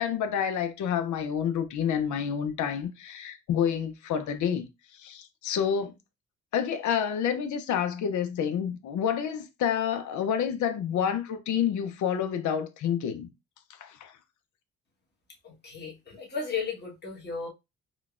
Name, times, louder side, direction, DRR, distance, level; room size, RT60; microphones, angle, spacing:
voice 1, 0.0-5.9 6.5-13.3 13.8-14.1, left 8 dB, 75° left, 0.6 m, -29 dB
voice 2, 15.4-17.5, left 5 dB, 35° left, 1.3 m, -35 dB
3.8 x 2.3 x 2.4 m
cardioid pair, 90°, 30 cm